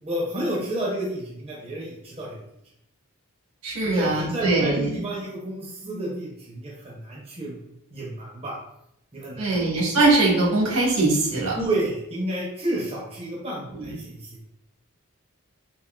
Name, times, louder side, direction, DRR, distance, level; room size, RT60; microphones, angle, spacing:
voice 1, 0.0-2.4 3.8-7.6 7.9-8.5 9.1-9.7 11.5-14.4, right 1 dB, 25° right, -4 dB, 0.6 m, -30 dB
voice 2, 3.6-4.9 9.4-11.5 13.7-13.9, right 2 dB, 80° right, -3 dB, 1.1 m, -21 dB
3.6 x 2.5 x 2.3 m, 0.80 s
head